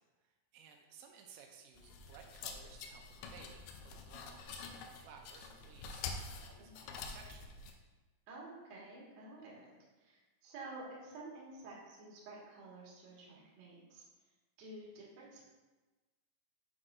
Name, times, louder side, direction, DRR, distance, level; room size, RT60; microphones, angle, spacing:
voice 1, 0.0-7.6, right 6 dB, 85° right, 3 dB, 2.9 m, -58 dB
sound 1, 1.8-7.7, left 5 dB, 85° left, 2.8 m, -47 dB
voice 2, 8.3-14.1 14.6-15.4, right 2 dB, 55° right, -5 dB, 2.1 m, -51 dB
7.7 x 6.2 x 2.5 m, 1.2 s
omnidirectional pair, 5.3 m